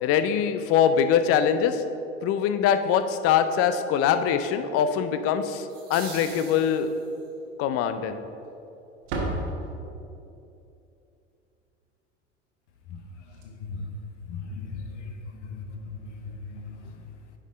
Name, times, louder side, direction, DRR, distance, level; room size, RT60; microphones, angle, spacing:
voice 1, 0.0-1.8 2.2-6.9 7.6-8.2, left 8 dB, 40° left, 10 dB, 0.6 m, -23 dB
sound 1, 5.7-7.3, right 4 dB, 80° right, 1.4 m, -43 dB
Slam, 6.3-6.5 6.8-7.0 7.4-7.5 8.3-8.7 8.9-10.2 12.9-13.0 13.2-13.4 15.0-15.1, right 2 dB, 55° right, 1.4 m, -34 dB
voice 2, 13.4-13.9 14.3-15.1 15.4-15.8 16.2-16.9, left 4 dB, 65° left, 5 dB, 0.9 m, -37 dB
9.9 x 5.4 x 3.7 m, 2.7 s
figure-of-eight pair, 75°, 37 cm